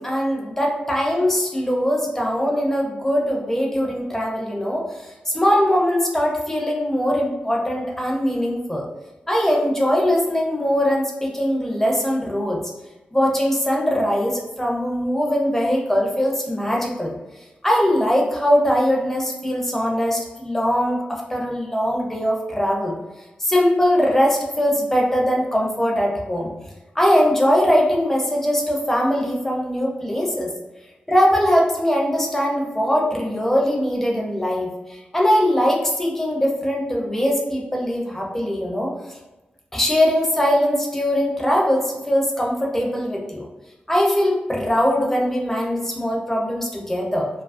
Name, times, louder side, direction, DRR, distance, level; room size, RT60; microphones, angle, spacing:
voice 1, 0.0-8.9 9.3-12.6 13.1-17.1 17.6-22.9 23.4-26.5 27.0-30.5 31.1-38.9 39.7-43.5 43.9-47.3, equal, 10° left, -1 dB, 0.4 m, -21 dB
2.6 x 2.4 x 2.4 m, 1.1 s
wide cardioid pair, 165°, 3 cm